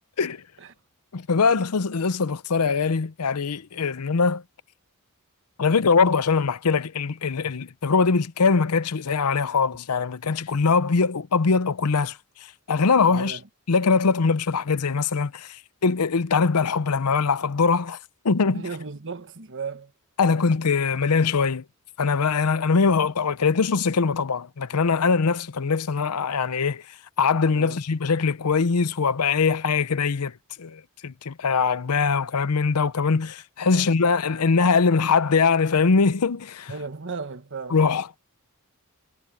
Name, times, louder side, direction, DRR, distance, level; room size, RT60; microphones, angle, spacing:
voice 1, 1.1-4.4 5.6-12.2 12.7-13.4 13.7-18.0 18.2-18.7 20.2-21.6 22.0-26.8 27.2-30.3 30.6-36.7 37.7-38.2, left 5 dB, 85° left, 0.7 m, -22 dB
voice 2, 13.1-13.4 18.5-19.9 27.5-27.8 33.7-34.0 36.7-37.8, right 4 dB, 55° right, 1.4 m, -35 dB
head